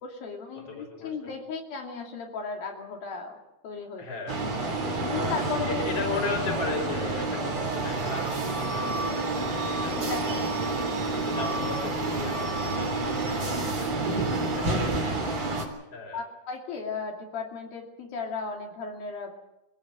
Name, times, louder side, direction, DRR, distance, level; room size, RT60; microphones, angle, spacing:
voice 1, 0.0-3.4 3.6-4.1 5.1-5.8 6.1-6.2 9.9-10.5 16.1-19.3, left 5 dB, 65° left, 1 dB, 4.4 m, -35 dB
voice 2, 0.5-1.3 4.0-4.4 5.7-10.3 10.6-10.8 11.1-14.7 15.1-16.2, left 3 dB, 40° left, -4 dB, 5.1 m, -36 dB
sound 1, 4.3-15.7, right 2 dB, 35° right, 4.1 m, -29 dB
25.0 x 16.0 x 7.6 m, 0.92 s
omnidirectional pair, 4.5 m